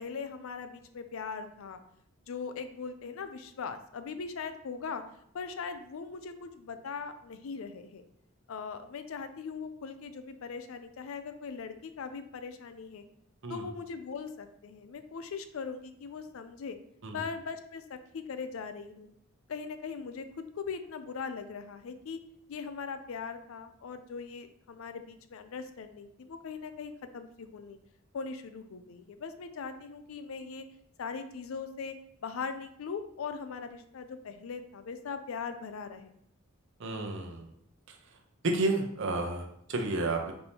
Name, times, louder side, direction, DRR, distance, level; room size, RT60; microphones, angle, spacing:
voice 1, 0.0-1.8 2.3-5.0 5.3-8.0 8.5-13.0 13.5-16.8 17.1-19.1 19.5-20.3 20.6-22.2 22.5-27.8 28.1-30.6 31.0-31.9 32.2-36.1, left 5 dB, 70° left, 9 dB, 0.4 m, -40 dB
voice 2, 36.8-37.5 37.9-38.0 38.4-40.3, right 2 dB, 65° right, 2 dB, 0.7 m, -31 dB
4.2 x 2.8 x 3.5 m, 0.69 s
head